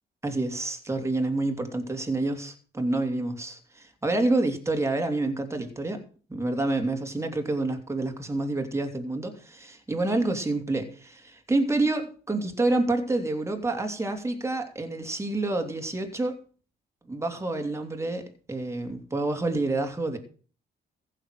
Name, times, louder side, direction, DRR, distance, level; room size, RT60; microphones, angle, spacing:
voice 1, 0.2-6.0 6.3-16.3 17.1-20.2, right 2 dB, 15° right, 4 dB, 2.8 m, -28 dB
15.0 x 6.7 x 6.6 m, 0.39 s
cardioid pair, 90°, 20 cm